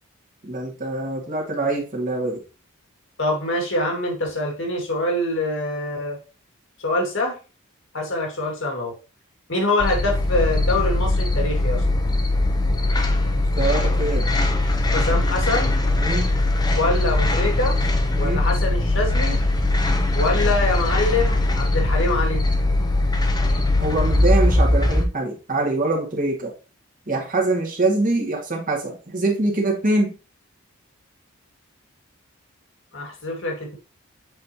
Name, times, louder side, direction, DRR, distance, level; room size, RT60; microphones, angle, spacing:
voice 1, 0.4-2.4 13.6-14.3 16.0-16.3 18.1-18.4 23.8-26.5 27.1-30.1, right 2 dB, 40° right, 0 dB, 1.9 m, -24 dB
voice 2, 3.2-6.2 6.8-7.4 7.9-8.9 9.5-11.8 14.9-15.7 16.7-17.8 18.2-19.4 20.1-22.4 32.9-33.8, left 2 dB, 60° left, 2 dB, 2.2 m, -24 dB
sound 1, 9.8-25.0, left 2 dB, 20° left, 0.8 m, -20 dB
7.6 x 4.4 x 3.0 m, 0.32 s
head